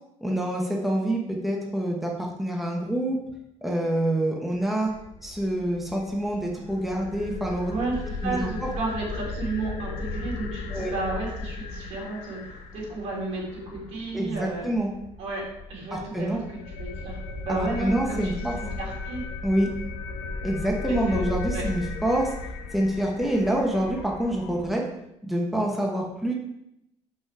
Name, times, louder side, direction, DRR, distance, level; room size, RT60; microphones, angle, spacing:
voice 1, 0.2-3.2 3.6-4.9 5.2-7.7 8.2-8.5 10.7-10.9 14.1-14.9 15.9-16.4 17.5-18.5 19.4-19.7 20.4-22.3 22.7-24.8 25.2-26.3, right 1 dB, ahead, -1 dB, 1.0 m, -26 dB
sound 1, 4.9-24.7, left 3 dB, 90° left, 1.0 m, -36 dB
voice 2, 7.6-14.7 15.2-15.4 15.7-16.4 16.8-19.2 20.9-21.6, right 3 dB, 75° right, -3 dB, 2.9 m, -33 dB
6.2 x 5.6 x 4.8 m, 0.84 s
cardioid pair, 150°, 11 cm